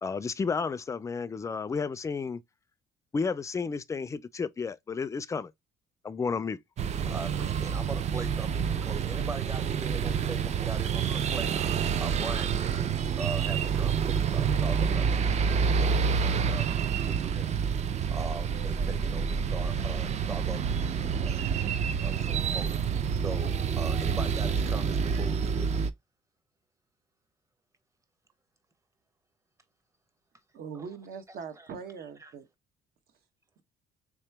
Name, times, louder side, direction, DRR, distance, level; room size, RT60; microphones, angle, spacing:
voice 1, 0.0-2.4 3.1-5.5 6.0-6.6, left 5 dB, 20° left, 0.3 m, -32 dB
sound 1, 6.8-25.9, right 6 dB, 40° right, 0.4 m, -28 dB
voice 2, 7.0-11.5 12.0-17.5 18.1-21.4 22.0-22.8 23.1-25.8 30.7-30.9 31.6-31.7 32.2-32.3, right 3 dB, 20° right, 0.7 m, -41 dB
voice 3, 30.5-32.5, right 6 dB, 65° right, 0.9 m, -41 dB
3.5 x 2.9 x 3.3 m
cardioid pair, 110°, 17 cm